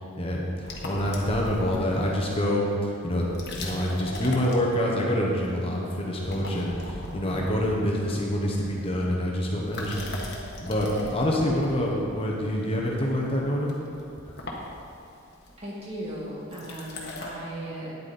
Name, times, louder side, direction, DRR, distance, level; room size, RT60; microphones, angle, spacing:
voice 1, 0.2-0.5 0.8-3.2 3.5-10.2 10.6-13.8 14.3-14.4, equal, 25° left, -2 dB, 1.1 m, -26 dB
sound 1, 0.6-2.5 3.2-5.2 5.4-5.8 6.1-9.1 9.6-17.3, left 2 dB, 50° left, 1.4 m, -39 dB
voice 2, 15.6-17.9, right 1 dB, 30° right, -6 dB, 2.1 m, -37 dB
9.6 x 8.5 x 4.3 m, 2.7 s
head